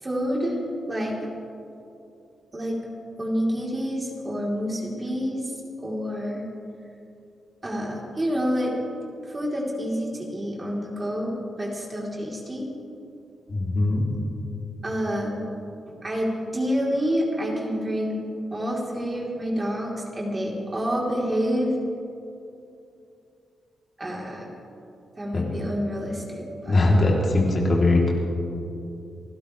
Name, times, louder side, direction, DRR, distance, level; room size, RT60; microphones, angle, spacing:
voice 1, 0.0-0.6 0.9-1.2 2.5-2.8 3.2-5.5 5.8-6.5 7.6-8.7 9.2-12.7 14.8-15.4 15.9-18.2 18.5-21.7 24.0-24.5 25.2-26.8, equal, 30° right, -3 dB, 4.0 m, -28 dB
voice 2, 13.5-14.0 25.3-25.4 26.7-28.1, left 2 dB, 50° left, -3 dB, 3.5 m, -20 dB
29.5 x 12.0 x 3.5 m, 2.7 s
cardioid pair, 60°, 0 cm